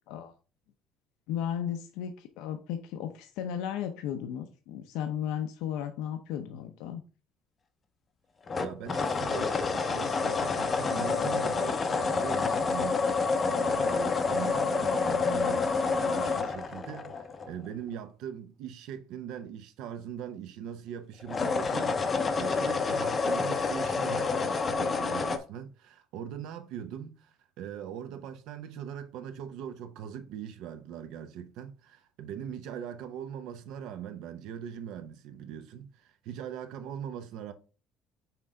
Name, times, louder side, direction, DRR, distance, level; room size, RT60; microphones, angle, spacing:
voice 1, 1.3-7.0, left 9 dB, 90° left, 0.7 m, -35 dB
sound 1, 8.5-17.7 21.2-25.4, left 4 dB, 20° left, 0.6 m, -28 dB
voice 2, 8.6-37.5, right 9 dB, 65° right, 0.8 m, -41 dB
5.9 x 3.8 x 4.4 m
cardioid pair, 170°, 0 cm